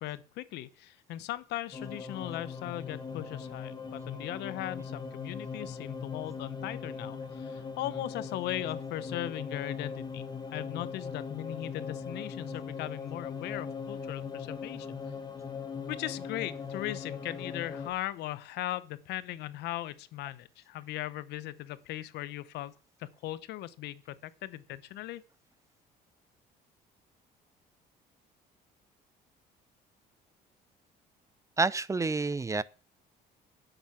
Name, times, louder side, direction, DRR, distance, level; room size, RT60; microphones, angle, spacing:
voice 1, 0.0-14.9 15.9-22.7 23.0-25.2, left 15 dB, 85° left, 1.0 m, -38 dB
sound 1, 1.7-17.9, left 5 dB, 25° left, 2.3 m, -40 dB
voice 2, 31.6-32.6, right 3 dB, 20° right, 0.5 m, -28 dB
10.5 x 8.0 x 6.0 m
cardioid pair, 110°, 17 cm